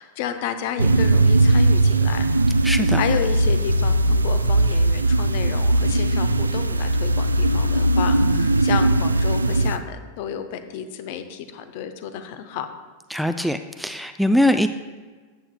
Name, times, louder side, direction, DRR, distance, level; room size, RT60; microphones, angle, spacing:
voice 1, 0.0-2.2 2.9-12.7, left 9 dB, 50° left, 9 dB, 0.7 m, -31 dB
sound 1, 0.8-9.8, right 2 dB, 80° right, 0.3 m, -19 dB
voice 2, 2.6-3.0 13.1-14.7, left 1 dB, ahead, 8 dB, 0.3 m, -21 dB
13.5 x 8.5 x 2.2 m, 1.4 s
figure-of-eight pair, 90°, 0 cm